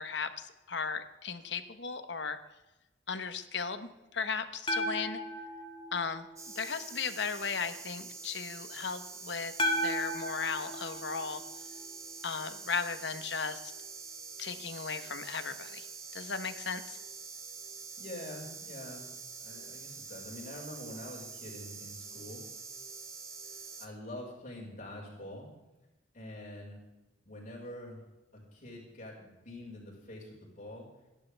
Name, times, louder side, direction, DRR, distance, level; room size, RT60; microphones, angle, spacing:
voice 1, 0.0-2.4 3.1-5.2 5.9-6.2 6.5-11.4 12.2-13.6 14.4-15.9 16.1-17.0, left 5 dB, 60° left, 9 dB, 1.1 m, -36 dB
sound 1, 4.7-6.9 9.6-12.0, equal, 25° left, 1.9 m, -35 dB
sound 2, 6.4-23.9, right 5 dB, 15° right, 1.2 m, -46 dB
voice 2, 18.0-19.1 19.4-22.4 23.4-25.5 26.1-26.8 27.3-28.0 28.3-30.9, left 1 dB, 40° left, -4 dB, 5.2 m, -45 dB
27.5 x 11.5 x 3.5 m, 1.0 s
head